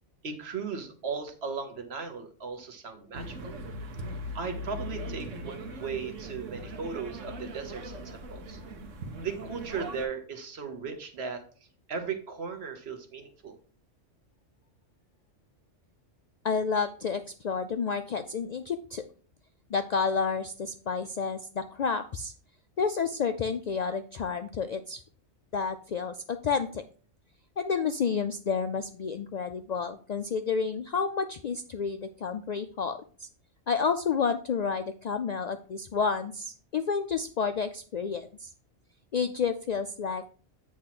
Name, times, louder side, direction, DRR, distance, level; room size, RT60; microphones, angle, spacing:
voice 1, 0.2-3.6 4.3-8.6 9.2-11.4 11.9-13.5, right 5 dB, 60° right, 6 dB, 1.3 m, -37 dB
sound 1, 3.1-10.1, equal, 85° right, 1.3 m, -40 dB
voice 2, 16.4-19.0 19.7-22.3 22.8-25.0 25.5-26.8 27.6-33.3 33.7-38.5 39.1-40.3, left 5 dB, 85° left, 8 dB, 0.3 m, -30 dB
8.7 x 3.1 x 5.8 m, 0.41 s
omnidirectional pair, 1.3 m